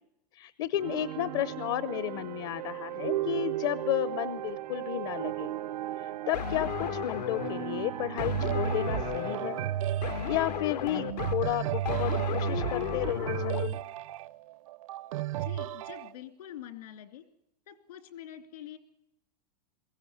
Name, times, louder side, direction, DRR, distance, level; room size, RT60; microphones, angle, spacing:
voice 1, 0.3-5.5 6.0-9.6 10.0-13.8, left 14 dB, 40° left, 17 dB, 0.8 m, -33 dB
sound 1, 0.8-12.0, right 13 dB, 85° right, 1.0 m, -37 dB
sound 2, 6.3-13.7, left 9 dB, 90° left, 1.9 m, -35 dB
sound 3, 8.2-16.1, right 12 dB, 55° right, 0.8 m, -33 dB
voice 2, 15.4-17.2 17.7-18.8, left 11 dB, 70° left, 9 dB, 2.9 m, -45 dB
22.5 x 16.5 x 9.6 m, 0.80 s
supercardioid pair, 170°, 20 cm